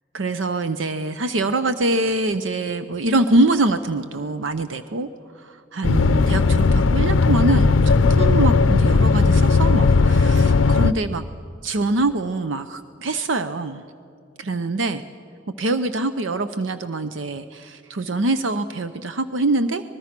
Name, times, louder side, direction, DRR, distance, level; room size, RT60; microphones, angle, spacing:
voice 1, 0.1-5.1 5.4-11.2 11.6-13.8 14.4-15.0 15.6-19.8, right 2 dB, 75° right, 10 dB, 0.7 m, -24 dB
sound 1, 5.8-10.9, left 4 dB, 80° left, 0.5 m, -16 dB
24.5 x 21.0 x 6.0 m, 2.5 s
head